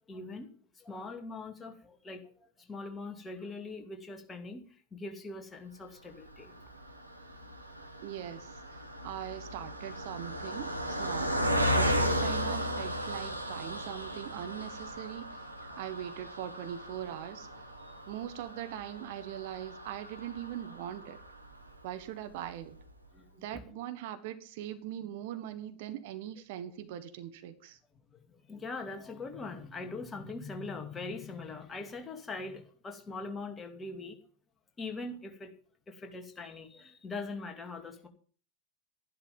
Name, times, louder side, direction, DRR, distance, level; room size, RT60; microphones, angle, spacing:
voice 1, 0.1-0.5 0.7-4.6 4.9-6.5 15.7-15.8 17.8-17.9 23.1-23.5 28.1-34.2 34.8-35.5 35.9-38.1, left 3 dB, 15° left, 2.5 m, -42 dB
Car passing by, 6.3-21.8 22.3-22.4 22.6-22.8, equal, 85° right, 1.8 m, -35 dB
voice 2, 8.0-11.4 11.7-15.5 15.8-17.7 18.1-21.2 21.8-22.8 23.4-27.8, right 11 dB, 50° right, 1.4 m, -41 dB
13.0 x 11.5 x 5.5 m
figure-of-eight pair, 90°, 0 cm